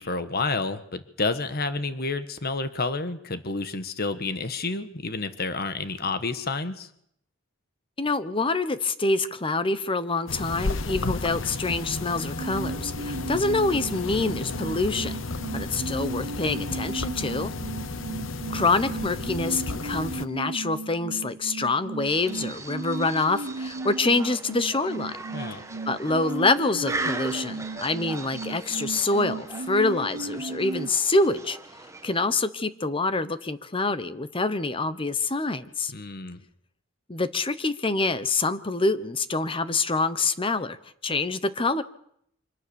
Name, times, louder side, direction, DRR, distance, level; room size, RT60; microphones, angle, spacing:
voice 1, 0.0-6.9 25.3-25.7 35.9-36.4, left 3 dB, 50° left, 11 dB, 1.4 m, -30 dB
voice 2, 8.0-15.1 15.5-17.5 18.5-25.1 25.9-31.6 32.0-35.9 37.1-40.8 41.0-41.8, left 3 dB, 25° left, 13 dB, 1.1 m, -26 dB
sound 1, 10.3-20.3, left 3 dB, 70° left, 1.0 m, -33 dB
sound 2, 12.4-30.9, right 3 dB, 75° right, 0.9 m, -36 dB
sound 3, 22.0-32.4, right 2 dB, 15° right, 1.5 m, -39 dB
25.5 x 18.5 x 7.1 m, 0.72 s
head